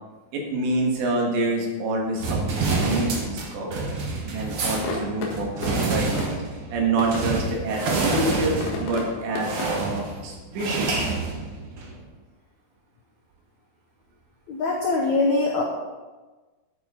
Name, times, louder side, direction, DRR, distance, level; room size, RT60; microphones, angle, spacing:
voice 1, 0.3-3.9 4.3-6.1 6.7-11.1, right 2 dB, 90° right, 0 dB, 4.1 m, -27 dB
sound 1, 2.2-12.0, right 3 dB, 70° right, 1.3 m, -28 dB
sound 2, 4.3-10.1, left 3 dB, 60° left, 2.9 m, -35 dB
voice 2, 14.5-15.6, left 3 dB, 85° left, 0 dB, 1.6 m, -22 dB
12.0 x 8.6 x 3.9 m, 1.3 s
omnidirectional pair, 4.9 m